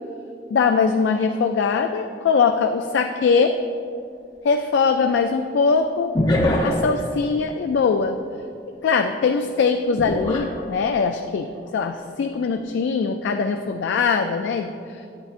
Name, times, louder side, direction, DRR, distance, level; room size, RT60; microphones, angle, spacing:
voice 1, 0.5-3.5 4.4-6.2 6.6-8.2 8.8-11.5 11.7-14.7, left 5 dB, 90° left, 5 dB, 0.3 m, -21 dB
sound 1, 3.3-3.4 6.2-7.0 10.0-11.1 11.7-11.9, left 1 dB, 25° left, 0.7 m, -23 dB
8.8 x 7.9 x 2.5 m, 2.4 s
head